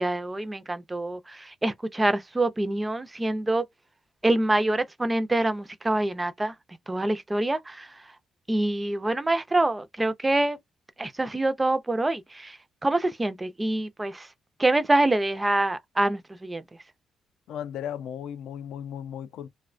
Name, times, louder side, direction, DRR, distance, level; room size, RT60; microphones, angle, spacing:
voice 1, 0.0-3.6 4.2-6.5 6.9-7.9 8.5-10.6 11.0-12.6 12.8-14.3 14.6-16.6, right 2 dB, 15° right, 0.3 m, -25 dB
voice 2, 17.5-19.5, left 9 dB, 80° left, 0.3 m, -35 dB
2.4 x 2.1 x 2.4 m
cardioid pair, 130°, 0 cm